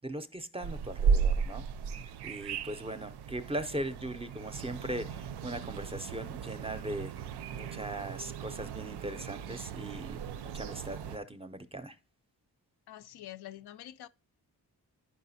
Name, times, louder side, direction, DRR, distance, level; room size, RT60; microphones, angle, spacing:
voice 1, 0.0-1.7 2.2-12.0, right 1 dB, 15° right, 0.5 m, -39 dB
sound 1, 0.6-11.2, right 6 dB, 85° right, 0.5 m, -35 dB
voice 2, 12.9-14.1, left 13 dB, 75° left, 0.5 m, -46 dB
11.0 x 4.9 x 2.7 m
cardioid pair, 90°, 39 cm